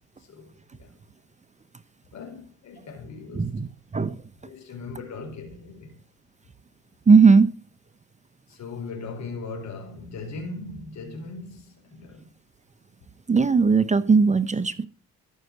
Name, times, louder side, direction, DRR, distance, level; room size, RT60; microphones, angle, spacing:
voice 1, 0.2-0.5 0.8-0.9 2.1-3.6 4.4-6.0 8.5-12.3, left 3 dB, 65° left, 4.6 m, -39 dB
voice 2, 3.3-4.2 7.1-7.5 13.3-14.9, right 5 dB, 25° right, 0.8 m, -18 dB
14.0 x 6.6 x 7.5 m
cardioid pair, 90°, 30 cm